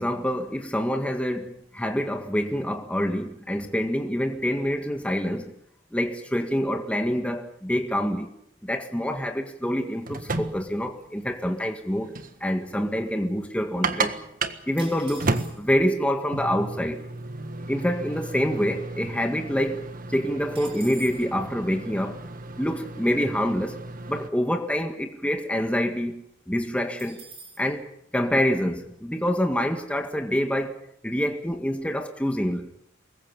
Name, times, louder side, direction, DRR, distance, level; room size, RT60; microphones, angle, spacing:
voice 1, 0.0-5.5 5.9-8.3 8.6-14.1 14.7-17.1 17.7-22.2 22.6-23.8 24.1-27.2 27.6-30.8 31.0-32.8, equal, 5° left, 1.8 m, -26 dB
sound 1, 9.8-24.3, right 3 dB, 45° right, 1.6 m, -34 dB
sound 2, 14.8-15.9 16.7-16.8 16.9-17.3 17.7-19.2 19.5-19.6 19.9-21.3 27.0-27.7, right 4 dB, 30° right, 6.3 m, -46 dB
25.0 x 21.5 x 7.0 m
head